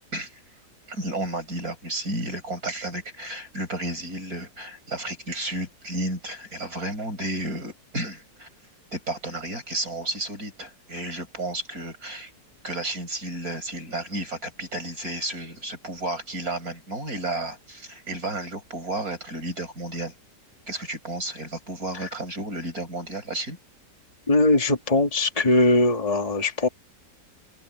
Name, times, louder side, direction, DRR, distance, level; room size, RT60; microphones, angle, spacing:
voice 1, 0.9-8.5 8.9-12.3 12.6-20.1 20.7-23.6, right 1 dB, 55° right, 7.9 m, -32 dB
voice 2, 24.3-26.7, left 2 dB, 20° left, 2.2 m, -20 dB
omnidirectional pair, 1.9 m